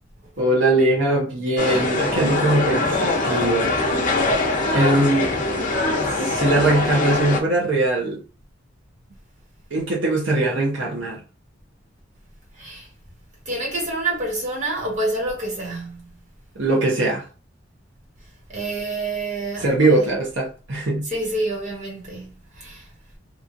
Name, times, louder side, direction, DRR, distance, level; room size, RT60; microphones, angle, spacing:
voice 1, 0.4-3.7 4.7-5.4 6.2-8.2 9.7-11.2 16.5-17.3 19.6-21.1, right 2 dB, 70° right, 0.9 m, -21 dB
sound 1, 1.6-7.4, left 2 dB, 45° left, 0.7 m, -22 dB
voice 2, 12.5-12.9 13.4-16.2 18.5-20.0 21.0-22.9, right 2 dB, 40° right, 1.3 m, -28 dB
2.9 x 2.5 x 2.5 m
head